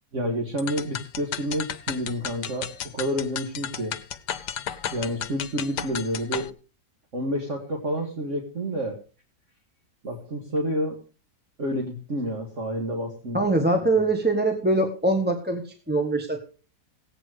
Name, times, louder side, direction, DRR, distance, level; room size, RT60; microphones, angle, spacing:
voice 1, 0.1-4.0 4.9-6.5 7.1-9.0 10.0-11.0 11.6-13.4 14.0-14.1, equal, 50° right, 2 dB, 2.1 m, -29 dB
sound 1, 0.6-6.5, left 9 dB, 85° left, 1.4 m, -33 dB
voice 2, 13.3-16.4, right 2 dB, 5° right, 4 dB, 1.3 m, -23 dB
16.0 x 9.0 x 4.9 m, 0.35 s
omnidirectional pair, 1.8 m